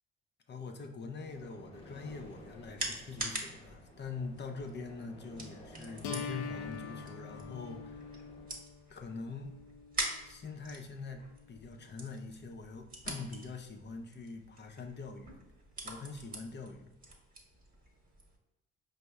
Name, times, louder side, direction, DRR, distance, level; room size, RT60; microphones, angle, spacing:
voice 1, 0.5-8.0 8.9-9.5 10.1-15.4 15.8-16.9, left 4 dB, 35° left, 4 dB, 0.7 m, -44 dB
sound 1, 1.2-8.5, left 1 dB, 20° left, 1.1 m, -54 dB
sound 2, 2.0-18.4, right 2 dB, 25° right, 1.2 m, -45 dB
sound 3, 6.0-12.0, left 6 dB, 85° left, 0.5 m, -45 dB
5.1 x 2.0 x 3.3 m, 1.0 s
hypercardioid pair, 55°, 31 cm